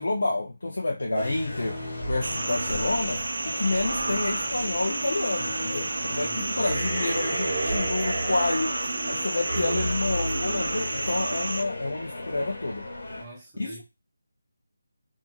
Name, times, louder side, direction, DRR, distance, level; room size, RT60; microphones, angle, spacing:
voice 1, 0.0-3.2 3.5-12.9 13.6-13.7, left 2 dB, 75° left, 0.5 m, -29 dB
sound 1, 1.1-13.2, left 1 dB, 45° left, 1.2 m, -37 dB
sound 2, 2.2-11.6, right 2 dB, 65° right, 0.4 m, -31 dB
voice 2, 6.2-6.7 13.2-13.8, right 1 dB, 10° right, 0.5 m, -43 dB
sound 3, 6.6-11.3, right 1 dB, 40° right, 1.2 m, -32 dB
2.8 x 2.5 x 2.3 m
figure-of-eight pair, 180°, 0 cm